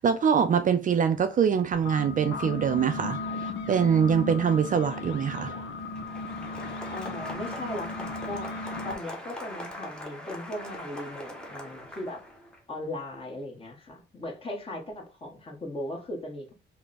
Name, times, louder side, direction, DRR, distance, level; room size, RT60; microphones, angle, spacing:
voice 1, 0.0-3.2 3.7-5.5, right 7 dB, 40° right, 0.4 m, -24 dB
sound 1, 1.7-8.9, left 3 dB, 70° left, 0.7 m, -36 dB
Applause, 5.7-12.6, left 1 dB, 5° left, 0.9 m, -41 dB
voice 2, 6.9-12.2 12.7-16.5, left 1 dB, 30° left, 1.3 m, -38 dB
3.5 x 2.2 x 3.8 m
cardioid pair, 90°, 20 cm